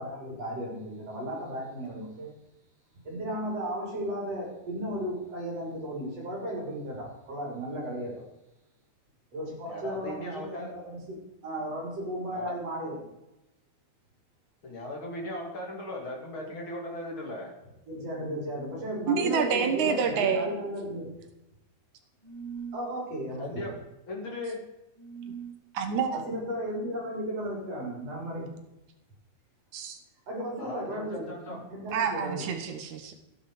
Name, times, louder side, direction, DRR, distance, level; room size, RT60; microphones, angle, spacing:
voice 1, 0.0-2.3 3.1-8.1 9.3-13.0 17.9-21.1 22.7-23.7 26.3-28.5 30.3-32.5, equal, 60° right, -3 dB, 5.5 m, -35 dB
voice 2, 9.7-10.7 12.3-12.6 14.6-17.5 23.4-23.7 24.1-24.6 30.6-31.6, left 1 dB, 45° left, -1 dB, 3.4 m, -37 dB
voice 3, 19.1-20.5 25.7-26.2 29.7-30.0 31.9-33.1, right 6 dB, 85° right, 7 dB, 2.7 m, -28 dB
sound 1, 20.0-20.7 22.2-22.9 25.0-25.6, right 6 dB, 35° right, 1.1 m, -42 dB
15.0 x 11.0 x 5.0 m, 0.96 s
omnidirectional pair, 3.3 m